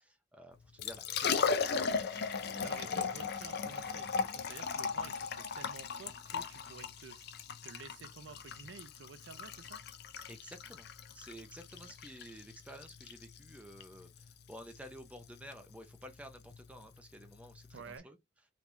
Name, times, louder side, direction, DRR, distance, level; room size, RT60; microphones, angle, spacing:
voice 1, 0.0-3.1 10.3-18.2, equal, 5° right, 0.5 m, -52 dB
Liquid, 0.6-18.0, left 5 dB, 55° left, 0.5 m, -38 dB
voice 2, 2.6-7.3 7.6-9.8 17.7-18.1, right 5 dB, 65° right, 0.5 m, -51 dB
3.4 x 3.0 x 2.5 m
head